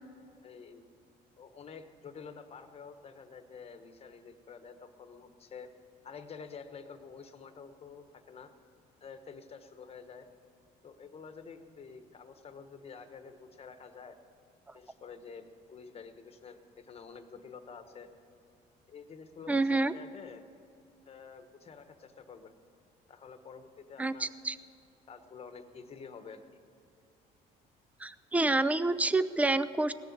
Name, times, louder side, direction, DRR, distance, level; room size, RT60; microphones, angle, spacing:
voice 1, 0.4-0.8 1.4-5.7 6.0-8.5 9.0-10.3 10.8-14.2 14.7-18.1 18.9-20.4 21.1-22.5 23.1-24.3 25.1-26.4, left 5 dB, 35° left, 8 dB, 1.1 m, -49 dB
voice 2, 19.5-19.9 24.0-24.6 28.0-29.9, right 2 dB, 10° right, 14 dB, 0.5 m, -28 dB
17.5 x 6.9 x 9.5 m, 2.6 s
cardioid pair, 110°, 17 cm